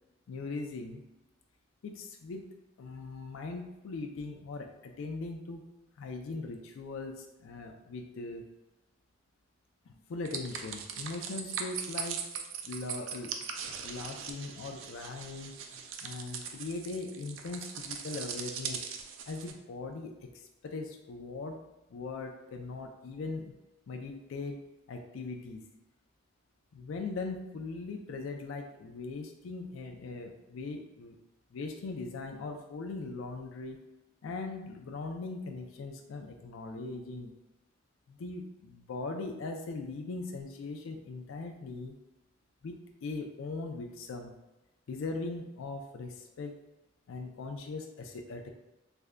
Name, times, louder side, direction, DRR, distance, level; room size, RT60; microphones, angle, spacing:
voice 1, 0.3-1.0 1.8-5.6 6.0-8.4 9.9-12.2 12.6-13.4 13.8-18.8 19.3-21.6 21.9-23.5 23.9-24.6 24.9-25.7 26.7-31.2 31.5-33.8 34.2-37.3 38.1-41.9 42.6-44.3 44.9-46.6 47.1-48.5, left 3 dB, 80° left, 3 dB, 0.4 m, -40 dB
sound 1, 10.2-19.5, right 7 dB, 70° right, 0.4 m, -40 dB
3.3 x 2.1 x 3.6 m, 0.98 s
head